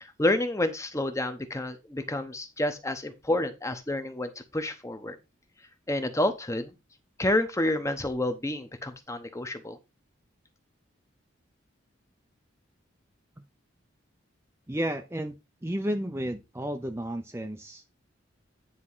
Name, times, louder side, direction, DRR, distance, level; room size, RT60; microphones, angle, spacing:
voice 1, 0.0-5.2 5.9-6.7 7.2-9.8, left 1 dB, 15° left, 8 dB, 0.9 m, -29 dB
voice 2, 14.7-15.4 15.6-18.1, right 1 dB, 10° right, 6 dB, 0.6 m, -32 dB
9.7 x 3.7 x 5.5 m, 0.25 s
head